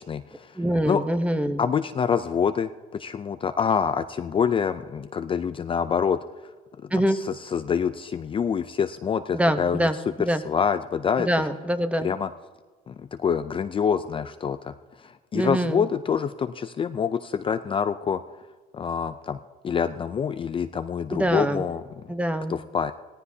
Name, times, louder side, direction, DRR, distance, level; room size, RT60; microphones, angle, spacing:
voice 1, 0.0-0.5 0.8-1.0 1.6-6.2 6.9-9.9 10.5-11.3 12.0-12.3 12.9-18.2 18.7-21.8 22.5-22.9, left 7 dB, 30° left, 10 dB, 0.4 m, -26 dB
voice 2, 0.5-1.6 6.9-7.2 9.3-10.4 11.2-12.1 15.3-15.8 21.1-21.6 22.1-22.6, equal, 5° right, 10 dB, 0.8 m, -24 dB
18.0 x 14.0 x 2.8 m, 1.4 s
cardioid pair, 110°, 17 cm